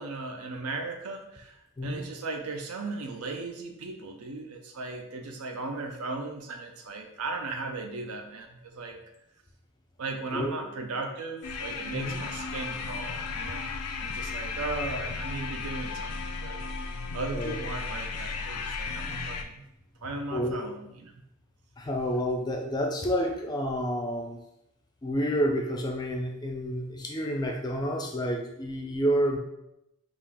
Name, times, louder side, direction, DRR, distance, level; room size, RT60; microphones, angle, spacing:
voice 1, 0.0-9.0 10.0-13.7 14.0-16.6 17.1-19.6 20.0-21.1, right 3 dB, 80° right, 5 dB, 0.6 m, -37 dB
sound 1, 11.4-19.4, left 4 dB, 85° left, 0.4 m, -35 dB
voice 2, 20.3-20.7 21.8-24.4 25.0-29.4, equal, 20° left, 1 dB, 0.4 m, -29 dB
3.8 x 2.4 x 3.5 m, 0.83 s
head